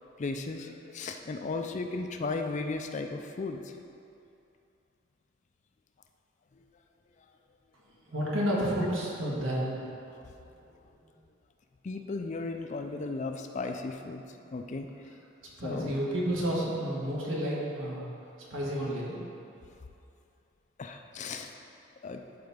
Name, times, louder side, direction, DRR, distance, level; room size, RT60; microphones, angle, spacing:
voice 1, 0.2-3.7 10.2-10.3 11.8-14.2 14.5-14.9 15.6-16.0 20.8-21.5 22.0-22.2, left 3 dB, 35° left, 5 dB, 0.4 m, -35 dB
voice 2, 8.1-9.8 11.0-11.1 15.4-18.0 18.5-19.2, equal, 80° right, -6 dB, 1.8 m, -31 dB
11.5 x 4.4 x 3.6 m, 2.7 s
head